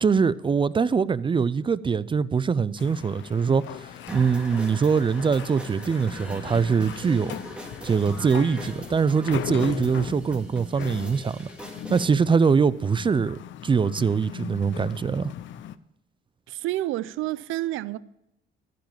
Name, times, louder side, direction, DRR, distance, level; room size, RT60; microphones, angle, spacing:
voice 1, 0.0-7.4 7.8-11.5 11.9-15.3, right 5 dB, 25° right, 0.4 m, -23 dB
sound 1, 2.8-15.8, left 11 dB, 70° left, 0.5 m, -39 dB
sound 2, 4.1-12.1, equal, 5° right, 2.0 m, -41 dB
voice 2, 16.5-18.0, right 15 dB, 85° right, 0.5 m, -29 dB
13.5 x 5.2 x 7.3 m
cardioid pair, 90°, 20 cm